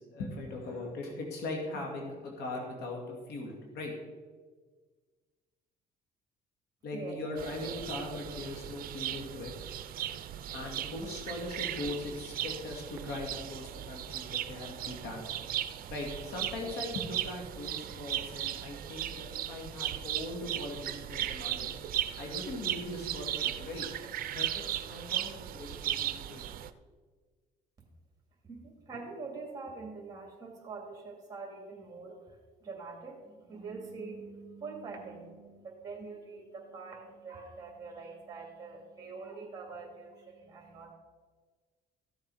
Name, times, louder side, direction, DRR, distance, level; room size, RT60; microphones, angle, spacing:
voice 1, 0.0-3.9 6.8-9.5 10.5-15.3 15.9-21.8 22.2-23.9 24.3-26.4, left 2 dB, 75° left, 0 dB, 2.3 m, -40 dB
sound 1, 7.4-26.7, right 12 dB, 60° right, 0.6 m, -37 dB
voice 2, 28.5-40.9, right 4 dB, 20° right, 0 dB, 2.4 m, -44 dB
14.5 x 7.3 x 4.9 m, 1.5 s
cardioid pair, 110°, 17 cm